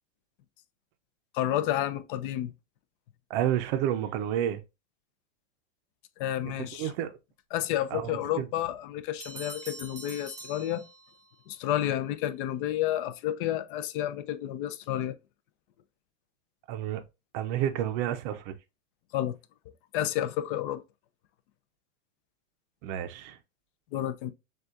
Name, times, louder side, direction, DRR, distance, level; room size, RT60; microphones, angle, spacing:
voice 1, 1.3-2.5 6.2-6.9 7.5-10.8 11.5-15.2 19.1-19.4 19.9-20.8 23.9-24.3, left 12 dB, 45° left, 0.5 m, -30 dB
voice 2, 3.3-4.6 6.6-7.2 7.9-8.5 16.7-17.0 17.3-18.5 22.8-23.4, right 11 dB, 40° right, 0.5 m, -30 dB
sound 1, 9.2-11.4, right 2 dB, 10° right, 1.0 m, -45 dB
6.4 x 2.4 x 2.4 m
supercardioid pair, 140°, 35 cm